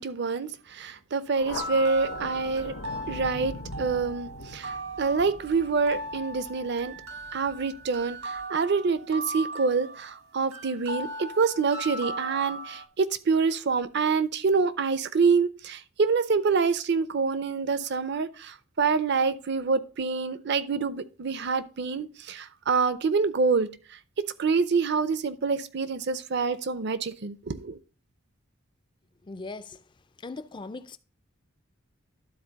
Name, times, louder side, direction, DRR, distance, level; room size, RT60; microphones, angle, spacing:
voice 1, 0.0-2.7 3.1-7.0 7.3-27.8, right 4 dB, 55° right, 0.6 m, -26 dB
Thunder, 1.4-8.4, left 2 dB, 80° left, 1.1 m, -42 dB
sound 1, 1.5-12.8, right 1 dB, 75° right, 1.6 m, -38 dB
voice 2, 29.2-29.8 30.2-31.0, left 3 dB, 20° left, 0.4 m, -39 dB
12.0 x 4.1 x 4.0 m
head